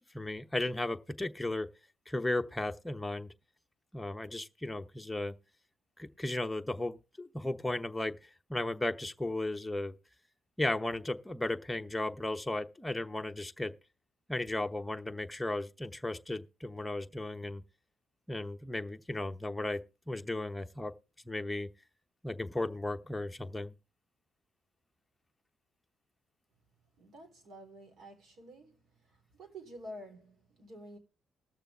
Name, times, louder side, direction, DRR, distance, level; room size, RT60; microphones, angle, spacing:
voice 1, 0.1-1.7 2.1-3.3 3.9-5.4 6.0-8.2 8.5-10.0 10.6-13.7 14.3-17.6 18.3-20.9 21.3-21.7 22.2-23.7, left 1 dB, 10° left, 0.9 m, -35 dB
voice 2, 27.0-28.8 29.4-31.0, right 1 dB, 65° right, 3.8 m, -49 dB
20.0 x 6.8 x 3.4 m
cardioid pair, 90°, 0 cm